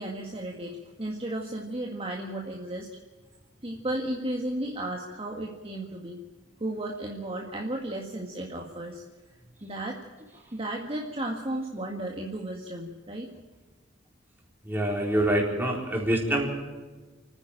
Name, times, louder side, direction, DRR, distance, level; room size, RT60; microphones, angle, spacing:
voice 1, 0.0-2.9 3.6-6.2 6.6-9.0 9.6-10.0 10.3-13.3, right 1 dB, 30° right, 0 dB, 1.9 m, -34 dB
voice 2, 14.7-16.5, right 1 dB, 10° right, -1 dB, 4.2 m, -25 dB
29.5 x 9.9 x 8.9 m, 1.3 s
head